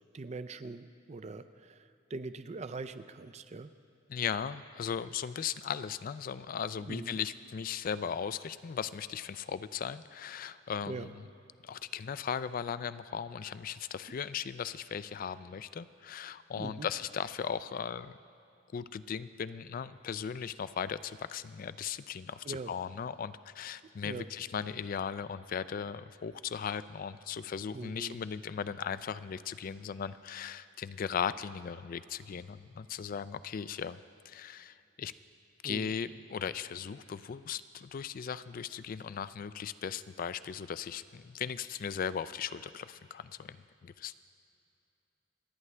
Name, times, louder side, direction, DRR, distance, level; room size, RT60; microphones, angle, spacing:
voice 1, 0.1-3.7 6.8-7.2 10.9-11.1 16.6-16.9 22.4-22.7 24.0-24.3 27.7-28.2 35.6-36.0, right 3 dB, 35° right, 12 dB, 0.4 m, -42 dB
voice 2, 4.1-11.2 11.6-18.2 18.7-34.0 34.3-35.1 35.6-44.2, left 7 dB, 45° left, 15 dB, 0.3 m, -37 dB
28.5 x 9.6 x 3.3 m, 2.7 s
head